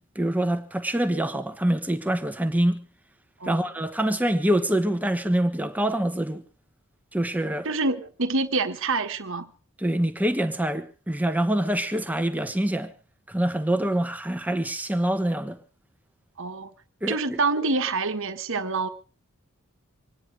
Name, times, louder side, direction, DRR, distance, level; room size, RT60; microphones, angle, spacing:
voice 1, 0.0-2.8 3.5-6.4 7.1-7.7 9.8-12.9 13.3-15.6 17.0-17.4, right 1 dB, 5° right, 1.3 m, -25 dB
voice 2, 7.6-9.5 16.4-16.7 17.1-18.9, right 3 dB, 65° right, 1.4 m, -26 dB
26.0 x 9.8 x 4.8 m
head